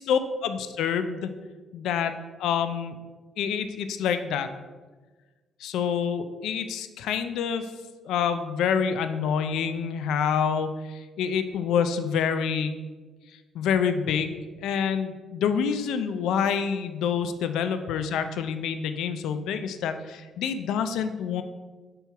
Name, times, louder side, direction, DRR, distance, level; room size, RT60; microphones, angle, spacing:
voice 1, 0.1-1.3 1.7-2.1 2.4-3.0 3.4-4.5 5.6-7.7 8.0-12.8 13.5-21.4, left 7 dB, 85° left, 9 dB, 0.4 m, -27 dB
5.3 x 4.4 x 4.6 m, 1.3 s
cardioid pair, 90°, 0 cm